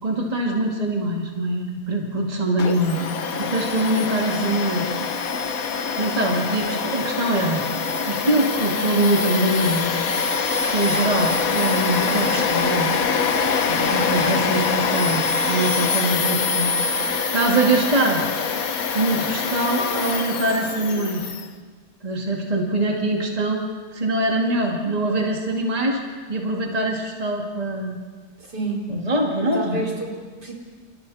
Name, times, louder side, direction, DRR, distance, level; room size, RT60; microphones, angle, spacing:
voice 1, 0.0-3.1 3.4-5.0 6.0-7.6 8.0-10.0 10.7-13.0 13.7-16.7 17.3-18.2 18.9-21.3 22.0-23.6 23.9-26.0 26.3-28.0 28.9-29.9, right 1 dB, 20° right, 0 dB, 2.4 m, -23 dB
Domestic sounds home sounds, 2.6-21.5, left 5 dB, 55° left, 1.5 m, -24 dB
voice 2, 28.4-28.9 29.5-30.5, right 2 dB, 65° right, -2 dB, 5.1 m, -30 dB
29.5 x 28.5 x 4.3 m, 1.5 s
omnidirectional pair, 1.9 m